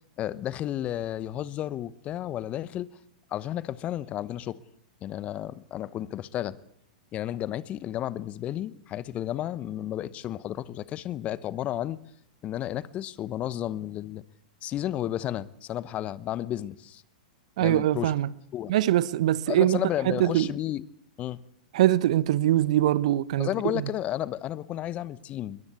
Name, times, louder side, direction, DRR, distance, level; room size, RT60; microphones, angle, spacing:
voice 1, 0.2-2.9 3.3-4.6 5.0-6.6 7.1-12.0 12.4-14.2 14.6-17.0 17.6-18.1 18.5-18.7 19.5-20.9 21.2-21.4 23.4-25.6, left 12 dB, 30° left, 1.0 m, -32 dB
voice 2, 17.6-18.3 18.7-19.8 20.0-20.5 21.7-23.9, right 13 dB, 60° right, 1.0 m, -23 dB
22.0 x 21.0 x 8.2 m
figure-of-eight pair, 100°, 4 cm